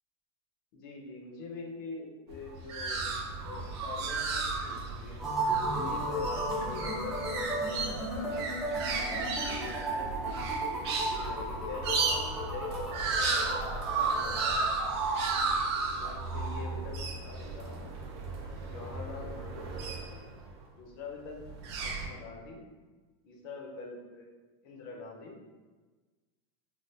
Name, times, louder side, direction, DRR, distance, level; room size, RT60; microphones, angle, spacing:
voice 1, 0.7-3.0 3.4-5.2 5.7-8.4 8.9-10.4 11.1-13.6 14.0-14.6 16.0-17.8 18.6-19.7 20.7-22.6 23.2-24.3 24.6-25.4, left 4 dB, 45° left, 0 dB, 0.6 m, -45 dB
sound 1, 2.3-20.5 21.4-22.1, right 4 dB, 60° right, 0.6 m, -34 dB
sound 2, 5.2-14.7, right 1 dB, 5° right, 0.5 m, -34 dB
3.2 x 2.4 x 2.7 m, 1.3 s
supercardioid pair, 180°, 15 cm